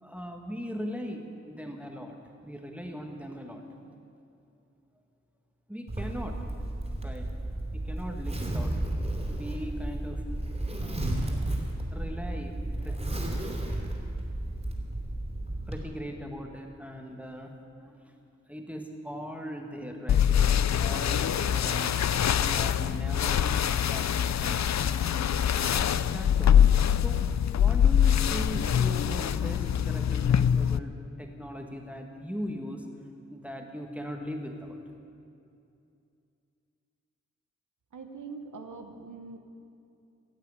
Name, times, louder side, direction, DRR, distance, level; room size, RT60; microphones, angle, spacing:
voice 1, 0.0-2.2 2.4-3.6 5.7-6.4 7.0-7.3 7.7-8.9 9.3-10.2 10.8-11.2 11.9-13.0 15.7-18.0 18.5-21.9 22.3-23.5 23.8-25.3 25.7-27.2 27.5-32.8 33.3-34.8, equal, 5° right, 3 dB, 1.6 m, -39 dB
Zipper (clothing), 5.9-15.8, right 1 dB, 20° right, 2.9 m, -33 dB
sound 1, 20.1-30.8, left 9 dB, 65° left, 0.4 m, -24 dB
voice 2, 37.9-39.4, right 4 dB, 85° right, 5 dB, 1.0 m, -42 dB
16.0 x 8.2 x 8.2 m, 2.6 s
wide cardioid pair, 55°, 30 cm